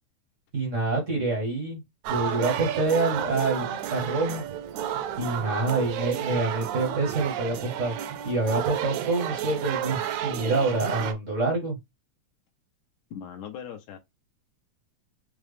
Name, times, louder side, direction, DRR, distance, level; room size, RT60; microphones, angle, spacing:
voice 1, 0.5-1.8 2.1-4.4 5.2-7.9 8.2-11.8, right 3 dB, 55° right, 0.8 m, -27 dB
sound 1, 2.0-11.1, right 10 dB, 80° right, 1.9 m, -31 dB
voice 2, 13.1-14.0, left 8 dB, 80° left, 2.1 m, -39 dB
5.8 x 2.0 x 3.3 m
omnidirectional pair, 3.4 m